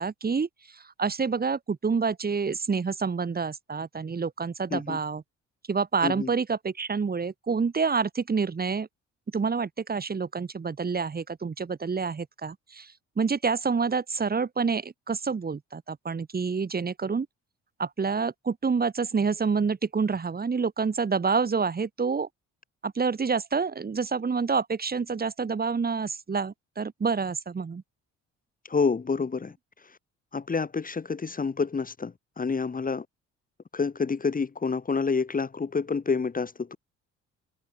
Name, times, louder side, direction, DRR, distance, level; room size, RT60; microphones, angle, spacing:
voice 1, 0.0-5.2 5.7-8.9 9.3-17.3 17.8-22.3 22.8-27.8, right 5 dB, 30° right, 1.9 m, -28 dB
voice 2, 28.6-29.6 29.8-30.0 30.3-33.0 33.7-36.8, left 5 dB, 30° left, 1.5 m, -28 dB
cardioid pair, 90°, 30 cm